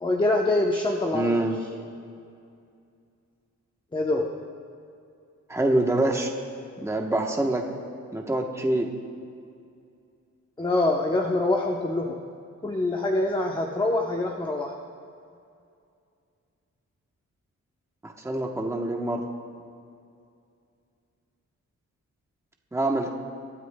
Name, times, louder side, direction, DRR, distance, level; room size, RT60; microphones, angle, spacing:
voice 1, 0.0-1.4 3.9-4.3 10.6-12.2 12.6-14.8, left 2 dB, 15° left, 0 dB, 0.8 m, -25 dB
voice 2, 1.1-1.6 5.5-6.3 6.8-7.6 8.1-8.9 18.0-19.2 22.7-23.1, right 1 dB, 10° right, 1 dB, 1.0 m, -25 dB
24.5 x 13.0 x 2.2 m, 2.4 s
wide cardioid pair, 160°, 30 cm